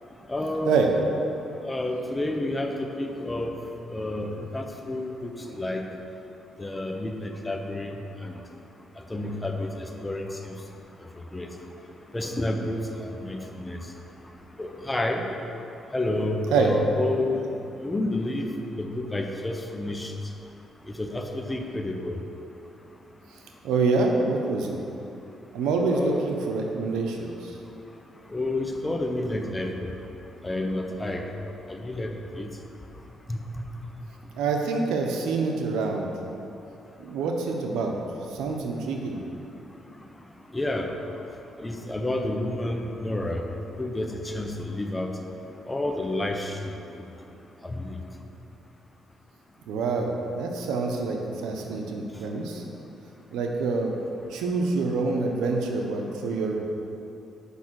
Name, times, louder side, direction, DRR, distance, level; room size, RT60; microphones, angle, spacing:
voice 1, 0.3-0.8 1.7-3.5 3.9-4.3 4.5-5.8 6.6-8.0 8.2-8.3 9.1-10.5 11.3-11.5 12.1-13.8 14.6-15.2 15.9-17.4 17.8-18.5 18.7-20.1 21.0-22.2 25.9-26.3 28.3-29.9 30.4-31.2 31.7-32.1 32.4-32.5 33.3-33.4 40.5-40.9 41.6-43.4 43.8-45.1 45.7-46.7 47.6-48.0, left 1 dB, 15° left, 3 dB, 0.9 m, -29 dB
voice 2, 23.6-24.8 25.5-27.5 34.3-36.1 37.0-37.9 38.3-39.2 49.7-52.6 53.3-53.9 54.3-56.6, right 4 dB, 90° right, 2 dB, 1.0 m, -26 dB
8.5 x 5.5 x 6.4 m, 2.9 s
cardioid pair, 90°, 0 cm